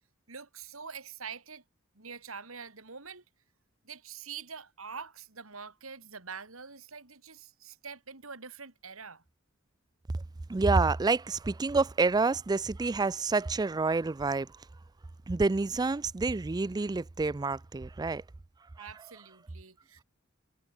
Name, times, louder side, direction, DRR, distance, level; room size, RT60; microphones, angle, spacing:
voice 1, 0.3-1.6 2.0-3.2 3.8-9.2 18.8-20.0, right 6 dB, 80° right, 3.6 m, -45 dB
voice 2, 10.5-14.5 15.3-18.2 18.8-18.9, right 3 dB, 20° right, 0.4 m, -28 dB
head